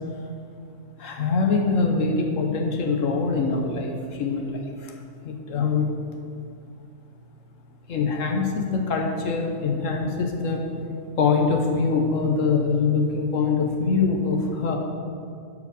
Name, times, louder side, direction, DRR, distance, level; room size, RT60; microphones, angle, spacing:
voice 1, 1.0-4.9 5.2-5.9 7.9-10.6 11.2-14.8, left 4 dB, 80° left, 2 dB, 1.3 m, -23 dB
11.0 x 4.9 x 6.8 m, 2.4 s
omnidirectional pair, 1.3 m